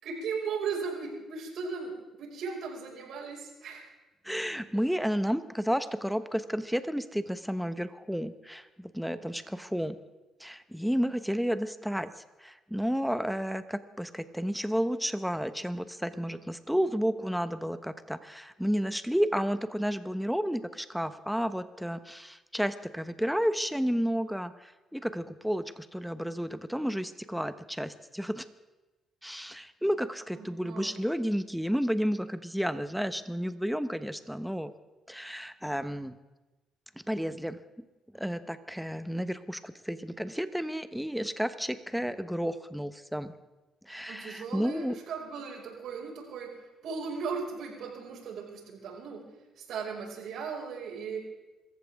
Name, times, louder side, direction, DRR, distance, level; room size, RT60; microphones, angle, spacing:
voice 1, 0.0-3.8 30.3-31.1 44.1-46.6 46.8-49.2 49.6-51.2, right 5 dB, 75° right, -1 dB, 5.6 m, -37 dB
voice 2, 4.2-9.9 10.4-12.1 12.4-28.4 29.2-34.7 35.1-36.1 37.1-37.6 38.1-43.3 43.9-45.0, equal, ahead, 11 dB, 1.1 m, -31 dB
25.5 x 14.5 x 3.6 m, 1.1 s
cardioid pair, 90°, 0 cm